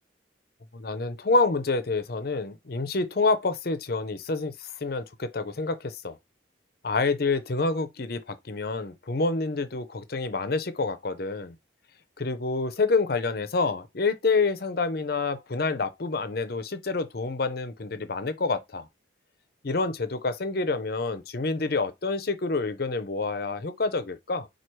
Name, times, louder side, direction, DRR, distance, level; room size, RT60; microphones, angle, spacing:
voice 1, 0.7-6.2 6.8-11.5 12.2-18.9 19.6-24.5, left 3 dB, 50° left, 0.6 m, -28 dB
4.5 x 2.4 x 4.6 m
head